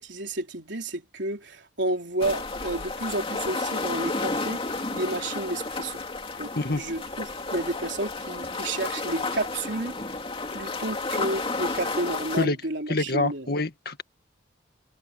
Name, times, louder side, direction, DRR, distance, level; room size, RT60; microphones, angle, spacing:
voice 1, 0.0-6.0 6.4-10.0 10.5-13.5, right 2 dB, 65° right, 3.8 m, -31 dB
sound 1, 2.2-12.5, left 3 dB, 30° left, 2.8 m, -32 dB
voice 2, 12.9-14.0, left 2 dB, 50° left, 1.9 m, -26 dB
head